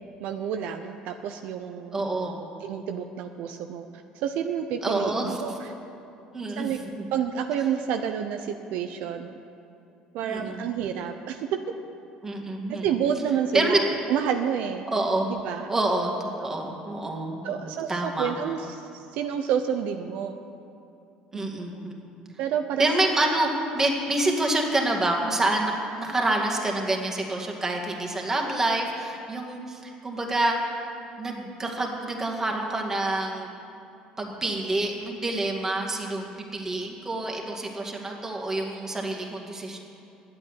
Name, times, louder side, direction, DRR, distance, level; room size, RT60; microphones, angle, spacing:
voice 1, 0.2-2.0 2.6-3.9 4.1-5.1 5.4-5.7 6.6-6.8 7.1-9.3 10.1-11.5 12.8-14.9 15.3-15.7 17.4-20.4 21.3-21.8 22.4-22.9, right 8 dB, 70° right, 5 dB, 0.7 m, -29 dB
voice 2, 1.9-2.4 4.8-5.4 6.3-7.1 10.2-10.7 12.2-12.9 13.5-13.9 14.9-15.3 15.7-18.3 21.3-21.9 22.8-25.7 26.0-30.7 31.2-33.5 34.2-39.8, right 2 dB, 20° right, 0 dB, 2.2 m, -27 dB
10.5 x 8.6 x 9.8 m, 2.7 s
supercardioid pair, 105°, 3 cm